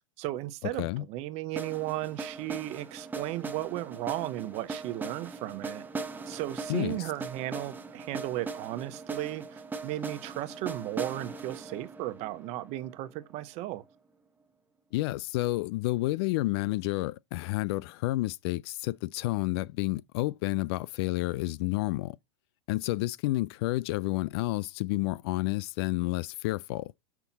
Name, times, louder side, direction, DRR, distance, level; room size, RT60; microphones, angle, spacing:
voice 1, 0.2-5.9 6.3-13.8, right 15 dB, 40° right, 0.9 m, -35 dB
sound 1, 1.6-13.5, right 4 dB, 10° right, 1.0 m, -40 dB
voice 2, 6.7-7.0 14.9-22.2 22.7-26.9, left 19 dB, 50° left, 0.4 m, -30 dB
7.1 x 5.9 x 4.0 m
hypercardioid pair, 130°, 17 cm